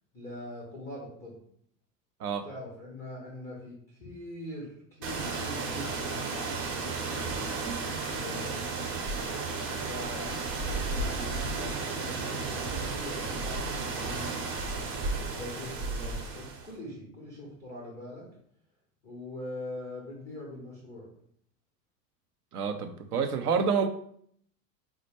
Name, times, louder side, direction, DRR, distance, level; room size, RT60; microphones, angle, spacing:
voice 1, 0.1-1.4 2.4-6.5 6.8-7.4 8.1-8.7 9.9-10.4 10.9-14.4 15.0-18.3 19.0-21.1, left 1 dB, 5° left, -4 dB, 0.3 m, -42 dB
sound 1, 5.0-16.7, right 3 dB, 35° right, 0.8 m, -33 dB
voice 2, 22.5-23.9, right 6 dB, 65° right, 7 dB, 0.5 m, -28 dB
4.3 x 2.1 x 3.1 m, 0.65 s
figure-of-eight pair, 90°, 50 cm